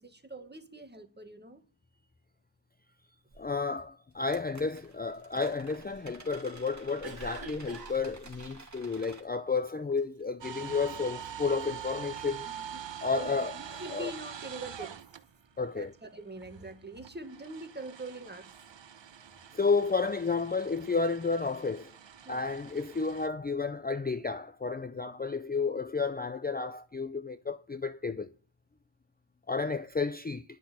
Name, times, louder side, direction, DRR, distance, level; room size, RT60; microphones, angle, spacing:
voice 1, 0.0-1.7 12.5-12.8 13.1-15.0 15.7-18.5 19.4-19.6 22.2-22.5, right 2 dB, 25° right, 1.7 m, -44 dB
sound 1, 3.3-3.5 4.1-9.2, right 3 dB, 40° right, 2.3 m, -51 dB
voice 2, 3.4-12.5 13.0-13.5 13.9-14.1 15.6-15.9 19.5-21.9 22.3-28.3 29.5-30.4, left 4 dB, 20° left, 0.5 m, -31 dB
Cough, 5.3-9.4 9.9-10.2 10.6-11.3 11.6-12.7 13.3-14.8, right 4 dB, 55° right, 3.1 m, -49 dB
sound 2, 10.4-15.7 16.0-23.3, right 9 dB, 75° right, 0.9 m, -45 dB
10.5 x 6.0 x 8.3 m
wide cardioid pair, 85°, 45 cm